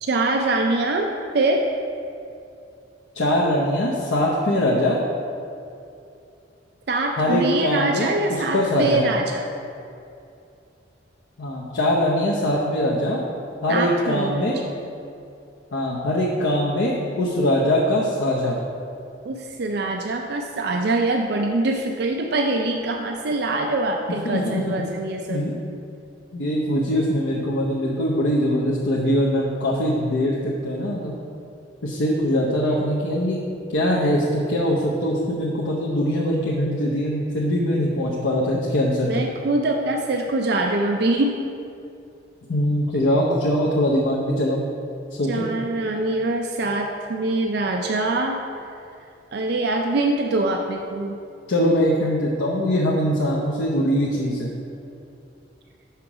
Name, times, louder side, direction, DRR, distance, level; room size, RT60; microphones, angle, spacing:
voice 1, 0.1-1.1 1.3-1.6 6.9-9.5 13.7-14.5 19.2-25.4 39.1-41.3 45.3-48.4 49.3-51.2, right 2 dB, 55° right, 3 dB, 0.4 m, -23 dB
voice 2, 3.1-5.0 7.1-9.0 11.4-13.2 13.6-14.6 15.7-18.6 24.1-24.8 25.3-25.5 26.3-31.2 31.8-33.4 33.7-39.2 42.5-44.6 45.2-45.4 51.5-54.5, equal, 85° left, -4 dB, 0.8 m, -22 dB
5.8 x 5.7 x 4.9 m, 2.6 s
head